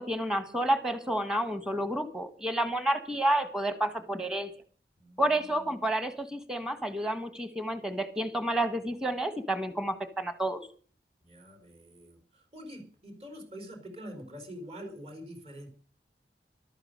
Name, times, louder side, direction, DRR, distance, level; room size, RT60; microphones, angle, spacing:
voice 1, 0.0-4.5 5.2-10.6, right 1 dB, 5° right, 9 dB, 1.5 m, -30 dB
voice 2, 5.0-5.9 11.2-15.7, equal, 35° right, 5 dB, 4.5 m, -46 dB
14.0 x 12.5 x 6.6 m, 0.42 s
head